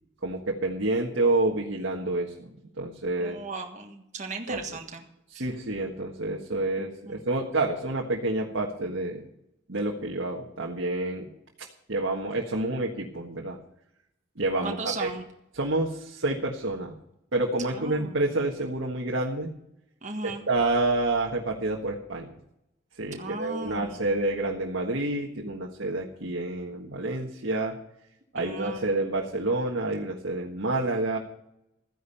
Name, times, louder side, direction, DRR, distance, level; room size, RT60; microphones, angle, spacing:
voice 1, 0.2-2.5 2.8-3.4 4.5-4.6 5.3-9.3 9.7-11.3 11.9-13.6 14.4-15.1 15.6-16.9 17.3-19.5 20.2-22.4 23.0-27.8 28.3-31.2, right 2 dB, 70° right, -1 dB, 1.6 m, -28 dB
voice 2, 3.2-5.1 5.3-5.5 7.1-7.2 14.6-15.2 17.7-18.2 20.0-20.4 23.2-24.2 28.4-29.0, right 3 dB, 35° right, 3 dB, 1.6 m, -36 dB
14.0 x 10.0 x 5.6 m, 0.82 s
head